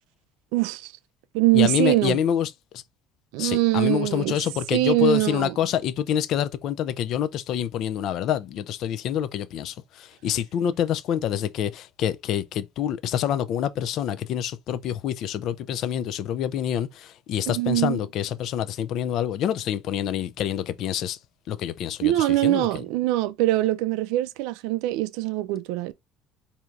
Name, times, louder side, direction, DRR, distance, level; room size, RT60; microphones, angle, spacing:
voice 1, 0.5-0.9 1.3-2.2 3.3-4.4 4.7-5.5 17.5-18.0 22.0-25.9, right 17 dB, 85° right, 0.4 m, -23 dB
voice 2, 1.5-2.8 3.4-21.2 21.5-22.7, left 10 dB, 55° left, 0.4 m, -27 dB
4.4 x 2.8 x 2.4 m
cardioid pair, 140°, 0 cm